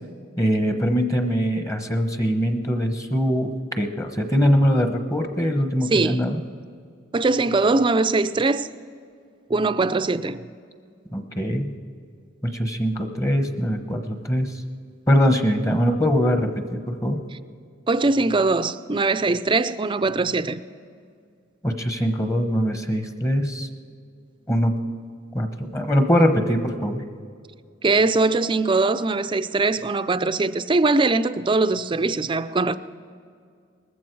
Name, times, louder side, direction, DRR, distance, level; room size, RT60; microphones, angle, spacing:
voice 1, 0.4-6.4 11.1-11.7 12.4-14.5 15.1-17.2 21.6-23.7 24.5-24.7 25.3-27.0, equal, 15° left, 1.0 m, -22 dB
voice 2, 5.9-6.3 7.1-8.7 9.5-10.5 17.9-20.6 27.8-32.7, right 3 dB, 25° right, 0.5 m, -21 dB
20.0 x 14.5 x 4.7 m
head